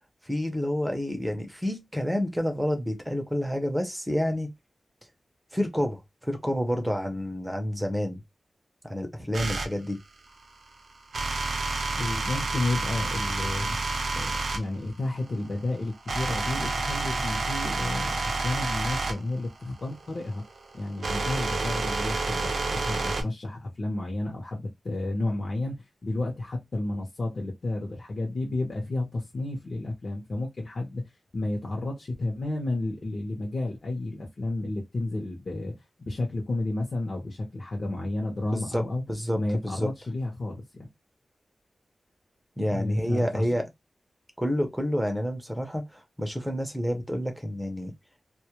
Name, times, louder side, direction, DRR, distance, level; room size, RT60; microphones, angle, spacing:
voice 1, 0.2-4.5 5.5-8.2 8.8-10.0 38.5-39.9 42.6-43.7 44.4-47.9, equal, 5° right, 0.6 m, -29 dB
sound 1, 9.3-9.7 11.1-14.6 15.3-23.2, right 3 dB, 70° right, 0.5 m, -29 dB
voice 2, 12.0-13.8 14.1-20.4 20.7-25.8 26.0-31.0 31.3-35.7 36.0-39.0 39.3-40.9 42.7-43.4, left 2 dB, 50° left, 0.7 m, -31 dB
2.2 x 2.1 x 2.9 m
wide cardioid pair, 130°, 0 cm